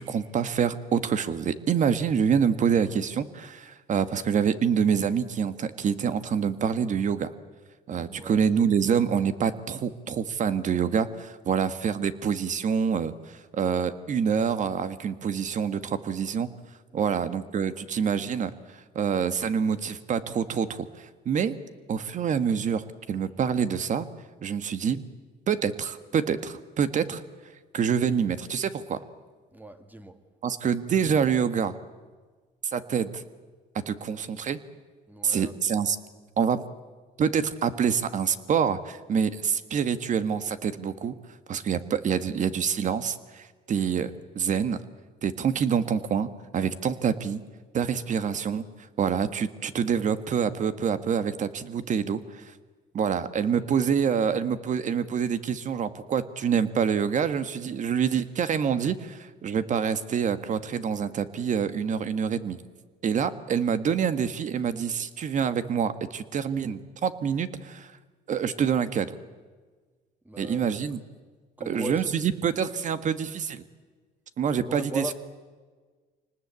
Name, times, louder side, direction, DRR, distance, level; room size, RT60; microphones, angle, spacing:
voice 1, 0.0-7.3 7.9-16.5 16.9-18.5 18.9-21.5 21.9-24.1 24.4-25.0 25.5-27.2 27.7-29.0 30.4-31.8 32.7-33.2 33.9-34.6 35.2-36.0 36.4-36.6 37.2-41.1 41.5-44.8 45.2-47.4 47.7-48.6 49.0-52.5 52.9-62.6 63.0-67.9 68.3-69.1 70.4-71.0 71.6-73.6 74.4-75.1, right 7 dB, 45° right, 12 dB, 1.6 m, -26 dB
voice 2, 7.9-8.4 16.9-17.2 29.5-30.2 35.1-35.6 53.5-53.7 70.2-70.7 71.6-72.1 74.6-75.1, right 1 dB, 10° right, 8 dB, 2.2 m, -38 dB
26.0 x 19.0 x 8.3 m, 1.4 s
cardioid pair, 110°, 17 cm